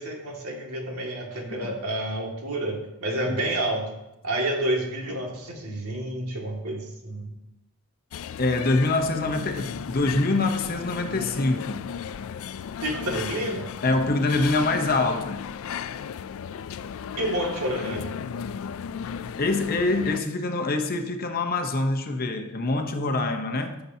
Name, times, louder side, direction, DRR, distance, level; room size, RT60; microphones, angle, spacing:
voice 1, 0.0-3.9 4.2-7.3 12.8-13.7 17.2-18.1, right 1 dB, 85° right, -1 dB, 2.1 m, -29 dB
sound 1, 8.1-20.2, left 7 dB, 65° left, 0.3 m, -35 dB
voice 2, 8.4-11.9 13.8-15.5 19.4-23.8, left 2 dB, 40° left, 5 dB, 0.8 m, -25 dB
14.5 x 6.8 x 2.8 m, 0.92 s
head